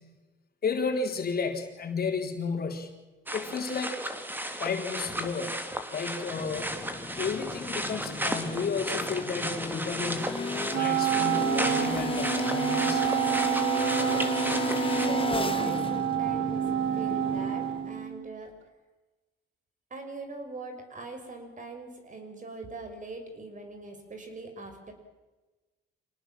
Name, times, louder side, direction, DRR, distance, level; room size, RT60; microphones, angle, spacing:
voice 1, 0.6-3.0 3.3-4.0 4.6-5.6 5.9-6.8 7.2-10.4 10.7-13.0, left 5 dB, 50° left, 3 dB, 4.0 m, -32 dB
sound 1, 3.3-15.1, equal, 10° right, 3.0 m, -34 dB
sound 2, 6.3-18.1, left 4 dB, 25° left, 1.9 m, -34 dB
Wind instrument woodwind instrument, 10.7-18.4, right 11 dB, 80° right, 1.8 m, -28 dB
voice 2, 14.8-16.6 17.0-18.5 19.9-24.9, right 3 dB, 40° right, 5 dB, 6.1 m, -42 dB
26.5 x 18.5 x 7.6 m, 1.2 s
cardioid pair, 90°, 20 cm